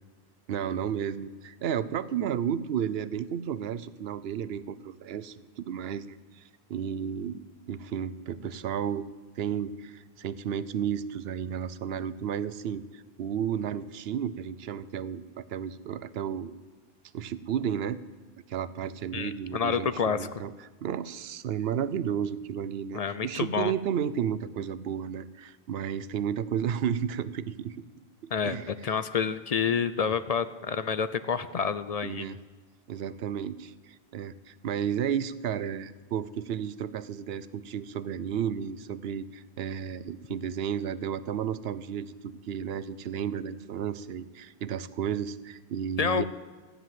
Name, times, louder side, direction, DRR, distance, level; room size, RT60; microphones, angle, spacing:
voice 1, 0.5-6.4 6.7-7.4 7.7-9.0 9.4-16.5 17.1-18.0 18.5-20.5 20.8-27.8 28.2-28.9 32.0-32.4 32.9-46.3, right 8 dB, 75° right, 16 dB, 0.8 m, -32 dB
voice 2, 19.1-20.3 22.9-23.7 28.3-32.3 46.0-46.2, left 6 dB, 50° left, 13 dB, 0.5 m, -28 dB
14.0 x 9.6 x 7.5 m, 1.4 s
omnidirectional pair, 1.1 m